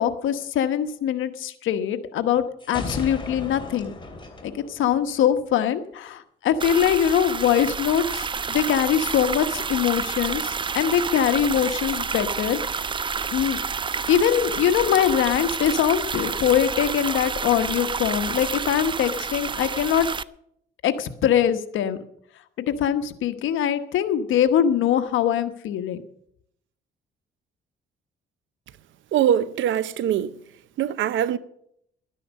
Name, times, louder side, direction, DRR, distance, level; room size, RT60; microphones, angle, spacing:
voice 1, 0.0-3.9 4.4-12.9 13.3-13.6 14.1-20.1 20.8-22.0 22.6-26.0, left 9 dB, 80° left, 1.1 m, -23 dB
sound 1, 2.6-5.5, left 2 dB, 25° left, 2.9 m, -36 dB
sound 2, 6.6-20.2, right 5 dB, 25° right, 0.4 m, -29 dB
voice 2, 29.1-30.3 30.8-31.4, right 10 dB, 75° right, 0.7 m, -22 dB
12.0 x 9.9 x 6.4 m
cardioid pair, 90°, 20 cm